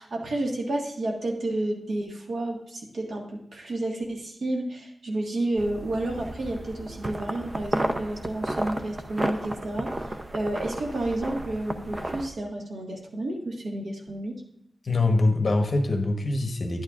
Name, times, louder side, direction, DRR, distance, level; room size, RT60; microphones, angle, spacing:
voice 1, 0.0-10.0 10.3-14.4, right 1 dB, 90° right, 1 dB, 1.6 m, -31 dB
sound 1, 5.6-12.3, right 1 dB, 30° right, 0.6 m, -33 dB
voice 2, 14.8-16.8, left 2 dB, 50° left, 4 dB, 1.1 m, -24 dB
10.5 x 8.9 x 2.5 m, 0.74 s
wide cardioid pair, 125°, 0 cm